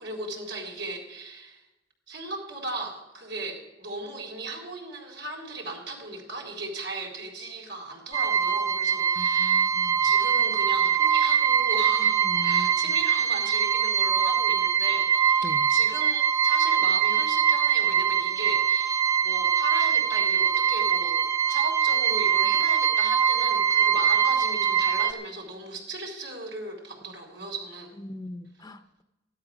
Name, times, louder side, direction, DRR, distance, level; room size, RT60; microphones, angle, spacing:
voice 1, 0.0-1.6 2.1-9.7 10.0-28.0, right 2 dB, 80° right, 0 dB, 3.7 m, -37 dB
sound 1, 8.1-25.1, right 8 dB, 15° right, 0.8 m, -23 dB
voice 2, 9.2-10.1 12.2-12.8 15.4-15.7 27.1-27.2 28.0-29.0, left 1 dB, 20° left, 9 dB, 0.5 m, -40 dB
14.0 x 12.0 x 5.9 m, 0.99 s
head